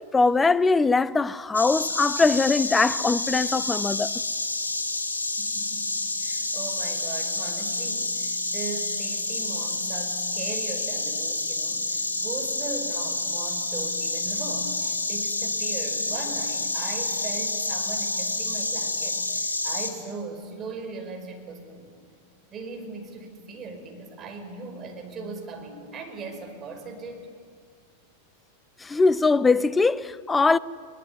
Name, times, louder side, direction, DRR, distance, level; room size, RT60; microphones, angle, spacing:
voice 1, 0.0-4.1 28.8-30.6, left 3 dB, 10° left, 0.6 m, -21 dB
Insect, 1.5-19.9, left 2 dB, 75° left, 3.1 m, -29 dB
voice 2, 5.4-22.0 22.5-27.2, right 3 dB, 25° right, 5.0 m, -38 dB
22.0 x 20.5 x 9.7 m
figure-of-eight pair, 90°, 0 cm